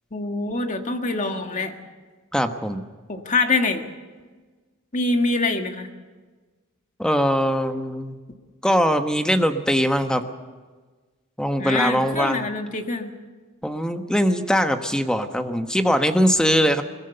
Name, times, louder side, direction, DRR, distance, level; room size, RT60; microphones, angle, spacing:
voice 1, 0.1-1.7 3.1-3.8 4.9-5.9 11.6-13.1, left 3 dB, 35° left, 5 dB, 1.8 m, -24 dB
voice 2, 2.3-2.9 7.0-8.2 8.6-10.2 11.4-12.4 13.6-16.8, equal, 5° left, 7 dB, 1.2 m, -21 dB
22.0 x 20.5 x 6.8 m, 1.4 s
head